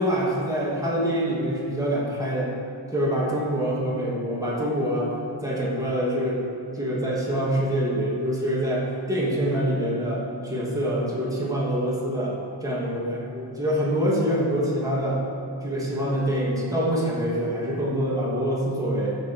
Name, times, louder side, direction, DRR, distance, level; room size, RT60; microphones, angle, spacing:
voice 1, 0.0-2.5 2.9-5.1 5.4-6.4 6.7-12.4 12.6-15.2 15.6-19.2, equal, 5° right, -6 dB, 2.7 m, -25 dB
11.0 x 6.9 x 7.0 m, 2.5 s
wide cardioid pair, 60°, 46 cm